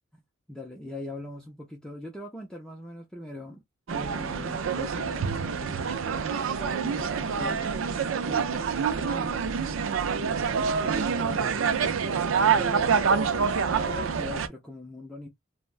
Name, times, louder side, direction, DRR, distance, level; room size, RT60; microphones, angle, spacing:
voice 1, 0.5-3.6 3.9-5.8 6.1-7.8 8.2-8.7 9.0-9.6 10.6-11.7 12.4-15.3, left 1 dB, 5° left, 0.5 m, -41 dB
sound 1, 3.9-14.5, right 6 dB, 75° right, 0.4 m, -26 dB
3.2 x 2.1 x 2.4 m
head